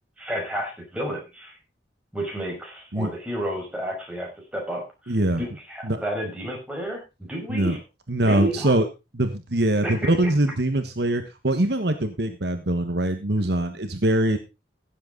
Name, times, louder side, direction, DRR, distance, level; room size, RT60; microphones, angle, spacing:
voice 1, 0.2-1.5 2.1-7.8 8.2-8.8 9.8-10.3, equal, 5° right, -1 dB, 5.6 m, -31 dB
voice 2, 5.1-5.4 5.8-6.0 7.5-7.8 8.1-8.9 9.1-14.4, right 1 dB, 65° right, 8 dB, 1.4 m, -23 dB
16.5 x 7.8 x 4.0 m, 0.27 s
head